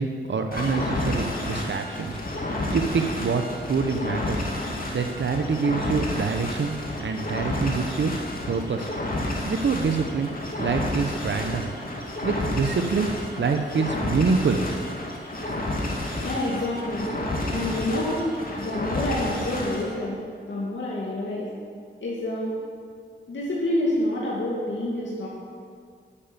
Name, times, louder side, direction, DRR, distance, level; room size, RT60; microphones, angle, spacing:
voice 1, 0.0-2.2 2.7-4.5 4.9-6.7 7.0-8.1 8.5-8.9 9.4-10.3 10.6-11.7 12.2-13.1 13.4-14.6, right 5 dB, 65° right, 5 dB, 0.8 m, -25 dB
sound 1, 0.5-19.9, left 1 dB, 45° left, 2.3 m, -30 dB
voice 2, 16.2-17.1 17.5-18.3 18.6-21.5 22.0-22.5 23.3-25.3, left 1 dB, 65° left, -6 dB, 2.1 m, -28 dB
9.9 x 6.9 x 7.1 m, 2.1 s
cardioid pair, 40°, 20 cm